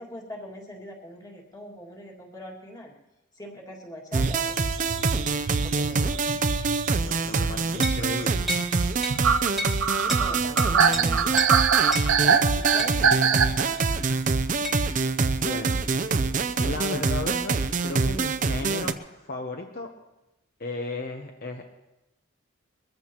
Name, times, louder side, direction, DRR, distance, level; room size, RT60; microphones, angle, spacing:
voice 1, 0.0-2.9 3.3-5.1 5.6-6.2 10.1-11.4 12.2-13.9, left 1 dB, 20° left, -1 dB, 2.1 m, -42 dB
sound 1, 4.1-18.9, right 4 dB, 40° right, 0.5 m, -25 dB
sound 2, 4.2-14.2, right 6 dB, 75° right, 0.7 m, -25 dB
voice 2, 6.9-8.5 15.4-15.8 16.6-19.9 20.6-21.7, left 2 dB, 45° left, 3 dB, 0.8 m, -35 dB
sound 3, 7.8-8.0 8.5-8.7 9.0-9.2 9.6-9.8 10.1-10.2 10.6-11.0 11.4-11.5 11.9-12.1 12.8-13.0 14.6-14.8, left 1 dB, ahead, 1.5 m, -31 dB
22.5 x 14.5 x 3.0 m, 0.96 s
head